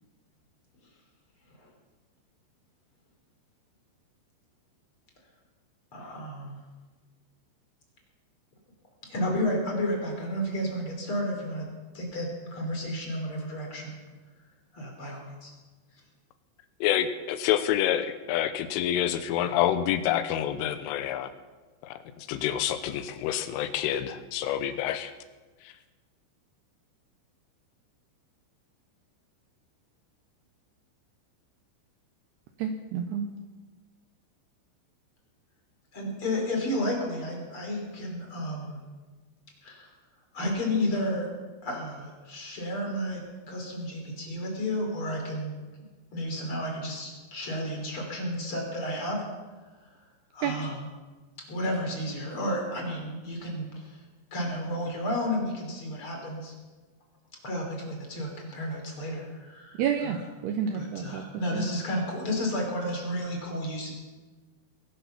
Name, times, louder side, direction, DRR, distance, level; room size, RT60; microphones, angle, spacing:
voice 1, 5.9-6.6 9.0-11.7 11.9-13.9 14.7-15.5 35.9-38.8 39.6-39.9 40.3-41.3 41.6-45.6 46.1-49.2 50.3-50.9 51.5-54.0 54.3-56.5 57.4-60.2 60.7-63.9, left 1 dB, 30° left, 1 dB, 3.4 m, -32 dB
voice 2, 16.8-21.3 21.8-25.1 25.6-25.7, left 11 dB, 90° left, 11 dB, 3.4 m, -28 dB
voice 3, 32.6-33.3 50.4-50.5 59.8-61.2 61.5-61.6, right 8 dB, 80° right, 6 dB, 2.4 m, -29 dB
21.0 x 11.5 x 5.9 m, 1.3 s
omnidirectional pair, 5.6 m